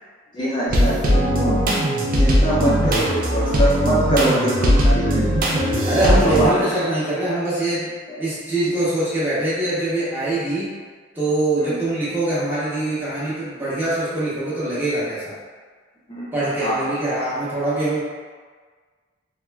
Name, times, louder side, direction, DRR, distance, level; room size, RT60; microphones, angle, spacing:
voice 1, 0.3-1.5 2.2-5.2 5.5-6.6 8.1-8.2 11.6-11.8 16.1-16.3 16.6-16.9, right 1 dB, 25° left, -8 dB, 0.4 m, -23 dB
sound 1, 0.7-6.5, equal, 50° right, 0.4 m, -19 dB
voice 2, 5.8-7.9 8.2-10.7 11.1-15.3 16.3-18.0, right 2 dB, 10° right, -10 dB, 0.8 m, -23 dB
3.0 x 2.3 x 2.2 m, 1.5 s
head